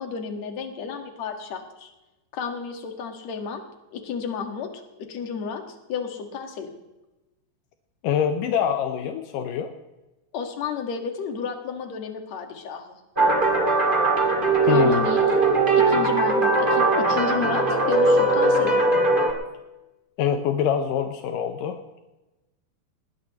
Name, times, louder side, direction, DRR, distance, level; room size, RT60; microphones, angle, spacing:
voice 1, 0.0-1.9 2.3-3.6 3.9-4.7 5.0-6.7 10.3-13.0 14.6-15.2 15.7-18.8, left 6 dB, 50° left, 4 dB, 2.5 m, -32 dB
voice 2, 8.0-9.7 14.7-15.1 20.2-21.8, left 8 dB, 75° left, 6 dB, 2.0 m, -24 dB
sound 1, 13.2-19.3, right 2 dB, 20° right, 1.4 m, -20 dB
20.0 x 19.0 x 3.1 m, 1.0 s
omnidirectional pair, 4.9 m